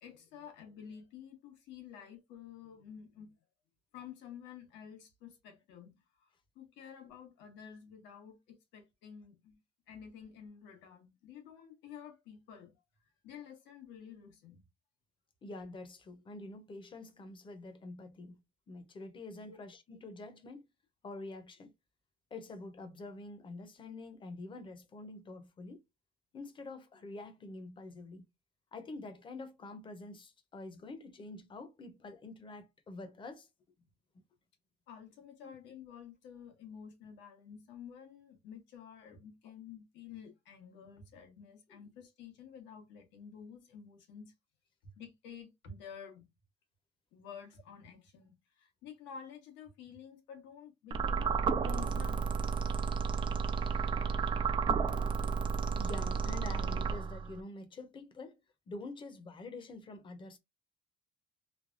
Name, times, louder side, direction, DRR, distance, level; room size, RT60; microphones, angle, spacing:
voice 1, 0.0-3.4 3.9-5.9 6.2-6.3 6.5-9.6 9.9-12.7 13.2-14.6 19.5-19.6 34.9-44.3 45.0-46.3 47.1-52.5, left 7 dB, 90° left, 1.2 m, -51 dB
voice 2, 15.4-18.4 18.7-20.7 21.0-21.7 22.3-25.8 26.3-28.2 28.7-33.5 35.4-35.5 41.7-41.8 54.6-55.5 55.8-58.4 58.7-60.4, left 2 dB, 25° left, 0.7 m, -47 dB
sound 1, 50.9-57.4, right 5 dB, 30° right, 0.3 m, -32 dB
3.3 x 2.2 x 2.5 m
cardioid pair, 140°, 18 cm